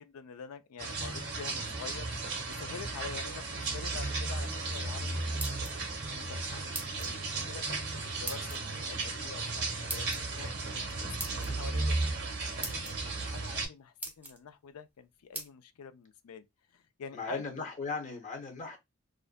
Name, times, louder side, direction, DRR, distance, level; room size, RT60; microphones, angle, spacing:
voice 1, 0.0-5.2 6.1-7.6 8.0-12.0 12.4-16.4 16.7-17.4, left 6 dB, 80° left, 0.4 m, -47 dB
sound 1, 0.8-13.7, right 3 dB, 50° right, 0.7 m, -35 dB
sound 2, 5.2-6.0 6.7-7.1 8.3-8.6 9.9-10.2 11.2-11.5 12.2-12.3 12.6-12.9 13.6-13.7 14.0-14.4 15.3-15.5, right 2 dB, 10° right, 0.5 m, -39 dB
voice 2, 17.1-18.8, left 4 dB, 35° left, 0.7 m, -37 dB
2.5 x 2.1 x 2.4 m
head